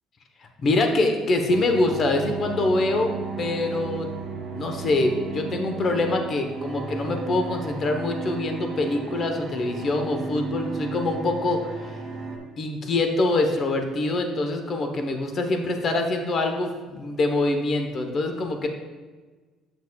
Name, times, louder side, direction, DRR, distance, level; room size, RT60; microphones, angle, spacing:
voice 1, 0.6-4.1 4.5-12.0 12.6-18.7, left 2 dB, 45° left, 5 dB, 0.9 m, -25 dB
sound 1, 1.5-12.4, right 4 dB, 65° right, 1.8 m, -34 dB
8.5 x 6.2 x 2.3 m, 1.3 s
cardioid pair, 105°, 0 cm